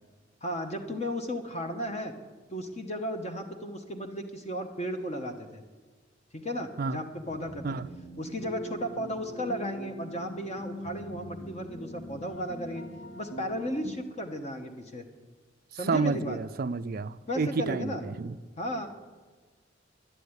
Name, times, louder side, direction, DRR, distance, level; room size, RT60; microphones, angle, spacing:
voice 1, 0.4-2.1 2.5-5.6 6.3-7.8 8.2-12.8 13.1-15.0 15.7-16.4 17.3-18.0 18.6-18.9, equal, 35° left, 1.1 m, -35 dB
sound 1, 7.1-14.0, left 1 dB, 65° left, 1.6 m, -42 dB
voice 2, 15.8-18.4, right 4 dB, 50° right, 0.4 m, -30 dB
11.5 x 10.5 x 9.7 m
head